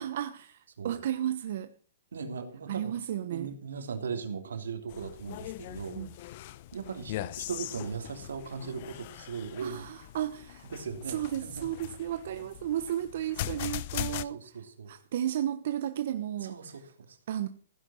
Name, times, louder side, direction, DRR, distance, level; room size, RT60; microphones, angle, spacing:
voice 1, 0.0-1.7 2.7-3.5 6.0-6.1 9.6-10.7 11.1-16.5 17.3-17.5, right 11 dB, 60° right, 1.1 m, -33 dB
voice 2, 2.1-2.9 3.3-6.0 6.7-9.9 10.7-11.7 14.1-14.9 16.4-17.2, right 5 dB, 85° right, 3.1 m, -38 dB
sound 1, 4.9-14.3, left 14 dB, 50° left, 0.9 m, -40 dB
16.0 x 10.0 x 6.3 m
hypercardioid pair, 140°, 0 cm